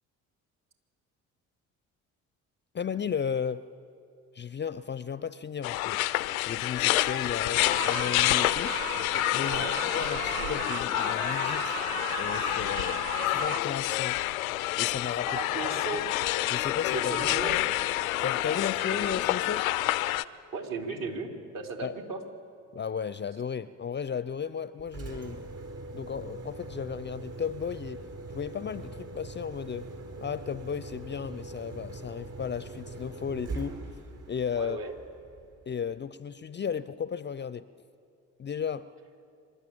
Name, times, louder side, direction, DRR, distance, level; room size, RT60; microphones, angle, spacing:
voice 1, 2.7-3.6 4.3-6.0 6.4-8.8 9.3-11.8 12.2-13.0 13.3-14.2 14.8-15.4 16.5-17.4 18.2-19.7 21.8-21.9 22.7-25.5 25.9-28.0 28.3-29.9 30.2-33.8 34.3-34.8 35.7-37.7 38.4-38.9, left 7 dB, 25° left, 16 dB, 0.6 m, -34 dB
sound 1, 5.6-20.2, left 17 dB, 85° left, 0.6 m, -28 dB
sound 2, 7.6-13.6, right 12 dB, 90° right, 0.6 m, -37 dB
voice 2, 9.5-9.8 15.3-16.1 16.9-17.6 18.5-18.6 18.9-19.1 20.5-22.2 34.6-34.9, right 4 dB, 55° right, 3 dB, 3.5 m, -36 dB
Engine, 24.8-35.7, right 2 dB, 35° right, 4.2 m, -42 dB
26.0 x 12.5 x 8.7 m, 2.4 s
hypercardioid pair, 55°, 40 cm